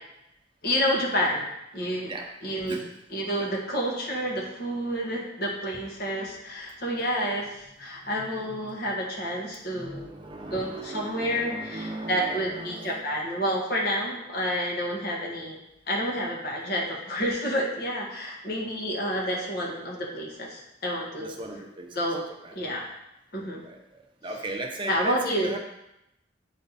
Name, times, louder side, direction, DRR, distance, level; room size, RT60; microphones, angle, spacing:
voice 1, 0.6-1.4 1.7-2.1 2.4-2.8 3.1-10.1 10.5-15.6 15.9-21.4 21.9-22.2 22.5-22.8 23.3-23.6 24.9-25.5, equal, 60° left, -2 dB, 1.7 m, -29 dB
voice 2, 9.5-13.2 21.2-22.0 22.4-22.6 23.6-23.8 24.2-25.6, right 2 dB, 25° right, 2 dB, 0.8 m, -37 dB
8.1 x 4.5 x 4.1 m, 0.85 s
head